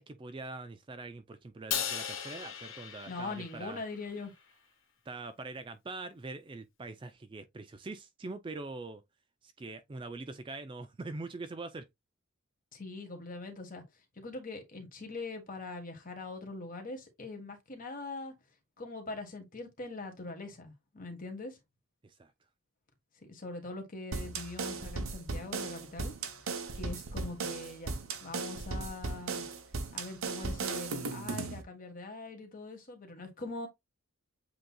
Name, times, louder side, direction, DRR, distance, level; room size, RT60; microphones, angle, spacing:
voice 1, 0.0-3.8 5.1-9.0 9.4-11.9 22.0-22.3, right 3 dB, 20° right, 0.3 m, -43 dB
Crash cymbal, 1.7-4.1, left 8 dB, 60° left, 1.0 m, -37 dB
voice 2, 3.1-4.3 12.7-13.8 14.2-18.3 18.8-21.6 23.2-26.1 26.7-29.5 29.9-33.7, left 3 dB, 40° left, 1.4 m, -42 dB
sound 1, 24.1-31.6, right 4 dB, 65° right, 0.8 m, -37 dB
7.8 x 2.8 x 2.2 m
head